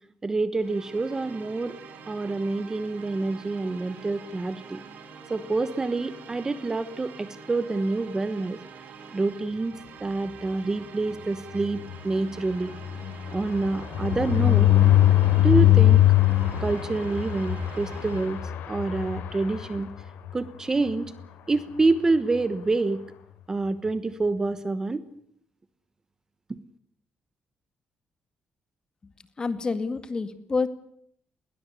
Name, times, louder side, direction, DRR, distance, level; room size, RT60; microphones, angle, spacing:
voice 1, 0.2-1.8 2.1-4.8 5.3-8.6 9.1-12.7 13.3-14.7 15.4-16.0 16.6-18.4 18.7-19.9 20.3-21.1 21.5-23.0 23.5-25.0, right 3 dB, 20° right, 14 dB, 1.1 m, -27 dB
sound 1, 0.6-18.5, right 5 dB, 70° right, 5.2 m, -46 dB
sound 2, 11.5-20.3 20.8-20.9 21.2-21.3 21.6-21.8, left 13 dB, 90° left, 4.4 m, -22 dB
voice 2, 29.4-30.7, left 4 dB, 25° left, 11 dB, 2.1 m, -28 dB
21.0 x 20.0 x 9.8 m, 0.65 s
cardioid pair, 150°, 3 cm